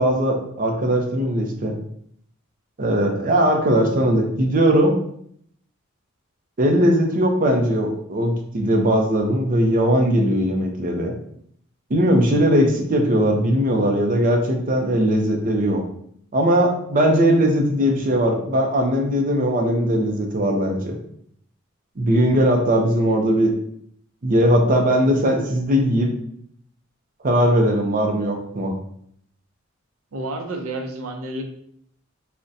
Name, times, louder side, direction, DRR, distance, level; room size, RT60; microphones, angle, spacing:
voice 1, 0.0-1.7 2.8-4.9 6.6-11.1 11.9-15.8 16.3-20.9 22.0-23.5 24.2-26.1 27.2-28.7, equal, 40° right, 2 dB, 0.5 m, -19 dB
voice 2, 30.1-31.4, right 1 dB, 85° right, 4 dB, 0.5 m, -30 dB
3.7 x 2.1 x 2.6 m, 0.67 s
head